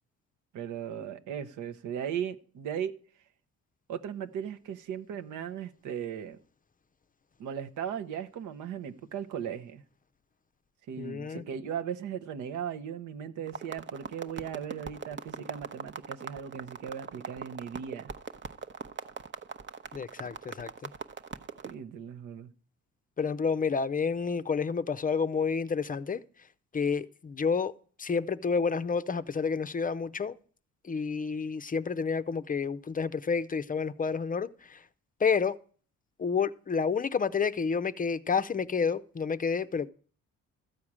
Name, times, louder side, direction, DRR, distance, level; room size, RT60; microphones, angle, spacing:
voice 1, 0.5-2.9 3.9-6.4 7.4-9.8 10.9-18.1 21.6-22.5, right 8 dB, 80° right, 1.0 m, -37 dB
voice 2, 11.0-11.4 19.9-20.9 23.2-26.2 26.7-27.7 28.0-30.3 30.8-34.8 35.2-35.6 36.2-39.9, left 5 dB, 30° left, 0.5 m, -29 dB
sound 1, 13.5-21.7, right 6 dB, 40° right, 0.9 m, -41 dB
14.0 x 4.8 x 8.7 m
cardioid pair, 90°, 30 cm